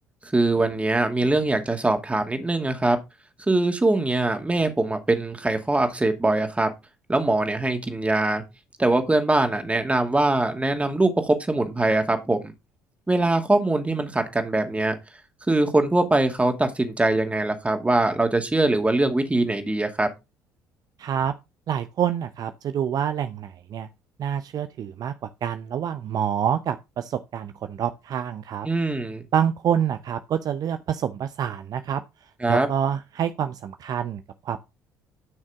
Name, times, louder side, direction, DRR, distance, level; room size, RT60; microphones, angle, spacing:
voice 1, 0.3-3.0 3.5-6.7 7.1-8.4 8.8-12.5 13.1-14.9 15.5-20.1 28.6-29.2 32.4-32.7, right 2 dB, 15° right, 2.5 m, -22 dB
voice 2, 21.0-21.3 21.7-23.9 24.2-28.7 29.3-32.0 32.5-34.6, right 9 dB, 50° right, 0.7 m, -27 dB
12.5 x 6.3 x 3.7 m
figure-of-eight pair, 50°, 9 cm